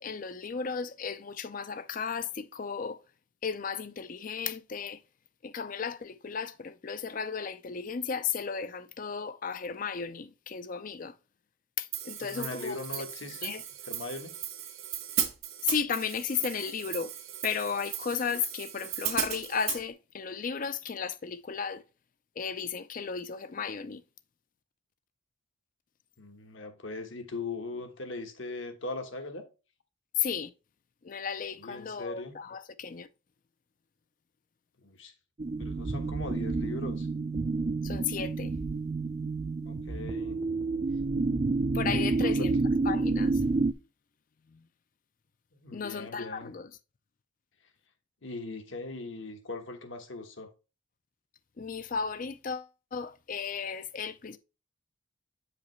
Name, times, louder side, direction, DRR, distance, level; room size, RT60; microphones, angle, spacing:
voice 1, 0.0-3.0 3.4-5.0 5.4-11.2 11.8-13.0 13.4-13.6 15.6-17.1 17.4-21.8 22.4-24.0 30.2-30.5 31.0-33.1 37.8-38.5 41.7-42.5 42.8-43.4 44.5-44.7 45.7-46.7 51.6-54.4, left 6 dB, 40° left, 0.4 m, -34 dB
Hi-hat, 11.9-19.8, right 10 dB, 75° right, 1.6 m, -36 dB
voice 2, 12.2-13.5 13.9-14.4 26.2-29.5 31.6-32.3 34.8-35.1 35.6-37.1 39.6-40.4 42.2-42.5 45.6-46.5 48.2-50.5, left 3 dB, 65° left, 1.2 m, -39 dB
sound 1, 35.4-43.7, right 3 dB, 30° right, 0.4 m, -29 dB
8.4 x 5.0 x 3.1 m
head